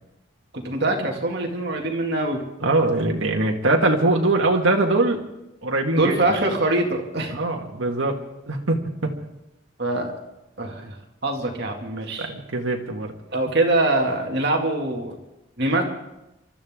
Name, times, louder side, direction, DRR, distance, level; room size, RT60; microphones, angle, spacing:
voice 1, 0.5-2.4 6.0-7.4 9.8-10.1 10.6-12.3 13.3-15.2 15.6-15.8, right 2 dB, 50° right, 1 dB, 2.4 m, -23 dB
voice 2, 2.6-5.2 5.6-6.1 7.3-8.2 8.5-9.1 12.2-13.1, right 2 dB, 75° right, 1 dB, 1.8 m, -22 dB
27.5 x 13.0 x 3.7 m, 0.92 s
head